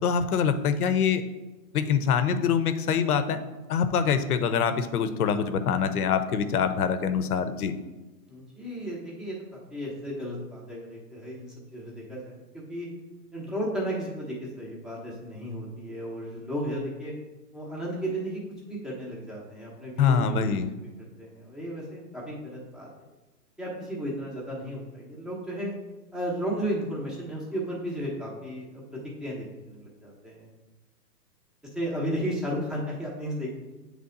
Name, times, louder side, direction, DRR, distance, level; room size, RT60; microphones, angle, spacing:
voice 1, 0.0-1.2 1.7-3.4 3.7-7.7 20.0-20.7, left 7 dB, 60° left, 10 dB, 0.8 m, -24 dB
voice 2, 8.3-12.9 13.3-17.1 17.5-20.6 21.2-22.9 23.6-25.7 26.1-30.5 31.7-33.6, equal, ahead, -5 dB, 0.8 m, -34 dB
8.8 x 3.4 x 3.8 m, 1.1 s
hypercardioid pair, 145°, 49 cm